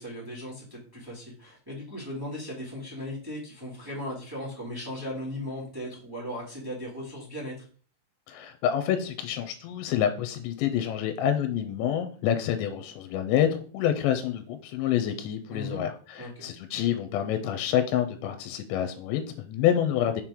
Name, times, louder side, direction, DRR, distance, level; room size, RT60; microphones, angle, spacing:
voice 1, 0.0-7.6 15.5-15.8 16.2-16.4, left 1 dB, 10° right, -6 dB, 0.9 m, -37 dB
voice 2, 8.3-13.5 13.7-20.2, left 10 dB, 85° left, 7 dB, 2.8 m, -27 dB
6.5 x 4.5 x 3.7 m, 0.41 s
omnidirectional pair, 5.1 m